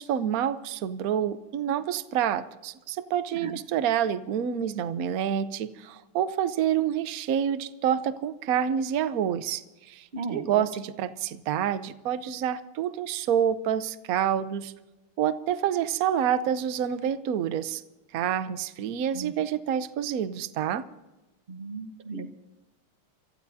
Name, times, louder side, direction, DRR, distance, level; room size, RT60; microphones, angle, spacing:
voice 1, 0.0-14.7 15.2-17.8 18.1-20.8, right 9 dB, 60° right, 12 dB, 0.9 m, -28 dB
voice 2, 10.1-10.7 19.1-19.3 21.5-22.3, right 3 dB, 35° right, 7 dB, 0.9 m, -36 dB
28.0 x 14.5 x 2.8 m, 1.1 s
omnidirectional pair, 2.4 m